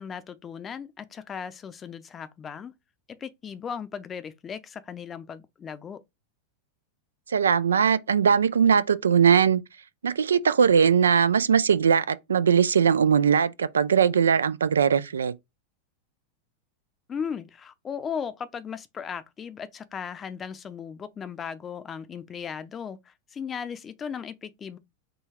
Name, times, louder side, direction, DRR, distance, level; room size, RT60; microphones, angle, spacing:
voice 1, 0.0-2.7 3.1-6.0 17.1-24.8, left 7 dB, 25° left, 0.6 m, -37 dB
voice 2, 7.3-9.6 10.0-15.3, right 7 dB, 85° right, 0.3 m, -20 dB
3.8 x 2.3 x 4.2 m
hypercardioid pair, 100°, 0 cm